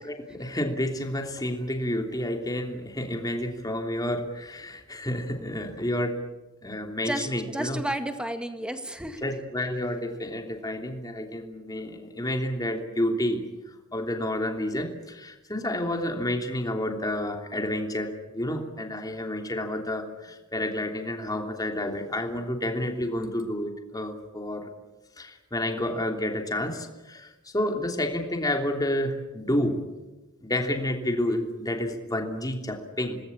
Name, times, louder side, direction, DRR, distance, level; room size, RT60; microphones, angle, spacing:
voice 1, 0.0-6.2 6.6-7.8 9.2-24.7 25.2-29.8 30.4-33.2, left 1 dB, 15° left, 3 dB, 3.1 m, -30 dB
voice 2, 7.0-9.3, right 1 dB, 5° right, 7 dB, 1.9 m, -32 dB
27.0 x 20.0 x 8.7 m, 1.1 s
head